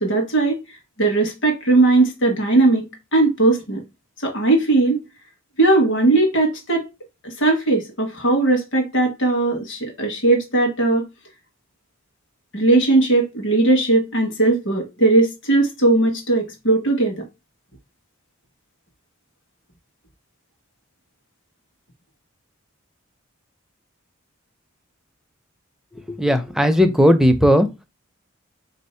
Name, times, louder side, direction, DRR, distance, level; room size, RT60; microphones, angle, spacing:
voice 1, 0.0-0.6 1.0-3.8 4.2-5.0 5.6-6.9 7.2-11.0 12.5-17.2, right 2 dB, 65° left, 1.1 m, -18 dB
voice 2, 26.1-27.7, equal, ahead, 0.4 m, -16 dB
3.7 x 2.6 x 4.3 m
head